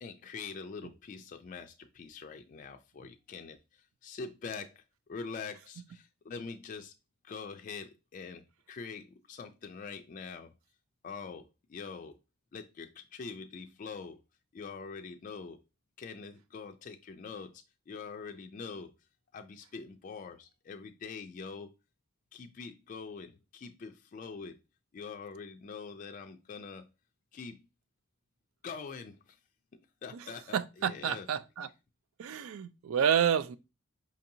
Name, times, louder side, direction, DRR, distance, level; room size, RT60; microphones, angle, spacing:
voice 1, 0.0-4.8 5.1-6.9 7.2-8.4 8.7-10.5 11.0-12.2 12.5-14.2 14.5-15.6 16.0-18.9 19.3-21.7 22.3-24.6 24.9-26.9 27.3-27.6 28.6-29.4 30.0-31.3, left 5 dB, 40° left, 0.3 m, -44 dB
voice 2, 30.5-31.7 32.2-33.6, right 8 dB, 85° right, 0.4 m, -29 dB
5.1 x 2.6 x 2.7 m
head